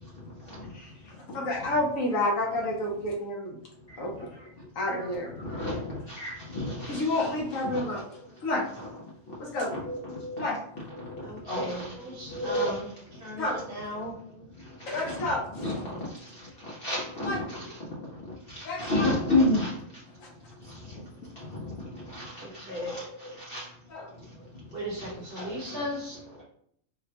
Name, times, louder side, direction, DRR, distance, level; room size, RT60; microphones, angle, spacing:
voice 1, 0.2-0.7 3.9-4.0 4.9-8.2 8.8-8.9 9.3-9.4 9.7-10.4 10.8-12.8 14.0-14.1 14.6-16.1 16.6-17.6 18.5-19.8 20.6-21.0 21.4-23.7 25.0-25.8 26.4-26.5, left 1 dB, 55° left, -4 dB, 0.7 m, -32 dB
voice 2, 0.7-3.6 4.0-4.3 4.8-5.3 6.9-8.0 8.4-8.6 9.4-9.7 10.4-10.6 13.4-13.6 14.9-15.4 17.2-17.4 18.6-19.1 20.2-20.3 21.0-21.3 22.7-23.0 23.9-24.1 25.4-25.5, left 1 dB, 70° left, 0 dB, 1.1 m, -30 dB
voice 3, 11.2-14.2 22.4-23.1 24.7-26.4, equal, 45° right, -4 dB, 1.1 m, -37 dB
4.0 x 2.1 x 2.8 m, 0.67 s
omnidirectional pair, 1.5 m